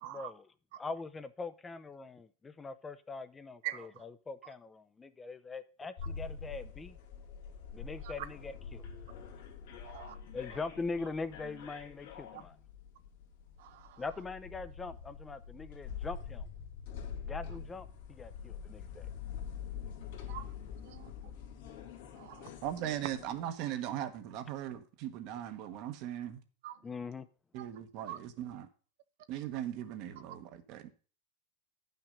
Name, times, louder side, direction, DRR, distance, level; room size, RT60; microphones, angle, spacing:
voice 1, 0.0-7.0 7.7-8.8 10.3-12.6 14.0-16.5 17.2-19.1 26.8-27.3, left 4 dB, 15° left, 0.6 m, -42 dB
sound 1, 6.0-23.4, left 7 dB, 75° left, 2.1 m, -45 dB
voice 2, 9.9-10.2 13.6-14.0 20.3-20.4 20.9-21.1 22.2-22.5 26.6-26.7 28.1-28.2, right 14 dB, 70° right, 0.6 m, -43 dB
voice 3, 22.6-26.4 27.5-28.7 29.3-30.9, right 11 dB, 55° right, 1.2 m, -39 dB
9.7 x 5.9 x 5.2 m
supercardioid pair, 125°, 0 cm